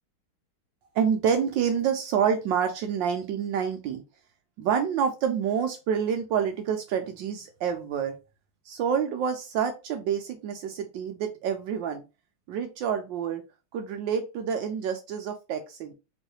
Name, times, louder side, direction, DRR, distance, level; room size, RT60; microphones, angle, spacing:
voice 1, 0.9-4.0 4.6-8.2 8.7-12.0 12.5-13.4 13.7-15.9, right 7 dB, 75° right, 6 dB, 1.2 m, -28 dB
3.9 x 3.1 x 2.9 m, 0.28 s
omnidirectional pair, 2.2 m